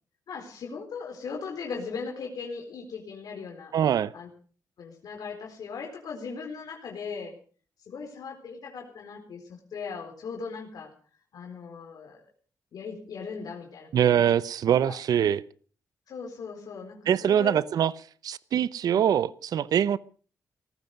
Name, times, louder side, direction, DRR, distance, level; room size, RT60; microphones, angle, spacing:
voice 1, 0.3-3.7 4.1-4.3 4.8-7.3 7.9-10.9 11.3-12.2 12.7-14.2 14.8-15.0 16.1-17.5 18.9-19.0, left 5 dB, 70° left, 2 dB, 4.1 m, -38 dB
voice 2, 3.7-4.1 13.9-15.4 17.1-17.9 18.2-20.0, right 9 dB, 75° right, 18 dB, 0.7 m, -23 dB
18.5 x 15.0 x 5.2 m, 0.42 s
cardioid pair, 95°, 7 cm